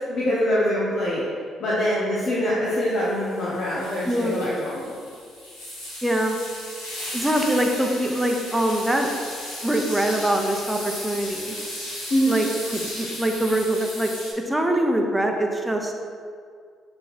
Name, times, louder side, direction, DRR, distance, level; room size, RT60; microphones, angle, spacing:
voice 1, 0.1-1.2 1.6-4.9 12.1-12.4, equal, 55° left, -7 dB, 1.1 m, -24 dB
sound 1, 2.6-14.3, left 1 dB, 90° left, 1.6 m, -36 dB
voice 2, 4.0-4.4 6.0-6.4 7.1-9.1 9.6-11.5 12.3-15.9, right 1 dB, 10° right, 2 dB, 1.0 m, -23 dB
6.5 x 3.9 x 4.2 m, 2.1 s
hypercardioid pair, 50°, 0 cm